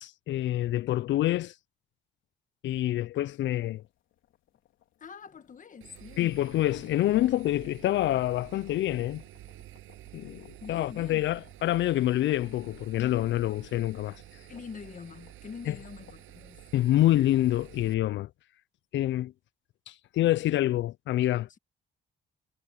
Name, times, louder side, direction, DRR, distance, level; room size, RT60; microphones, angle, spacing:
voice 1, 0.0-1.5 2.6-3.8 6.2-9.2 10.1-14.2 15.7-15.8 16.7-18.3 18.9-19.3 19.9-21.5, left 14 dB, 70° left, 0.4 m, -27 dB
sound 1, 3.1-17.8, left 12 dB, 85° left, 3.8 m, -63 dB
voice 2, 5.0-6.3 10.0-11.2 14.5-16.6, left 6 dB, 40° left, 1.4 m, -45 dB
Engine, 5.8-17.9, right 14 dB, 90° right, 7.6 m, -50 dB
cardioid pair, 90°, 20 cm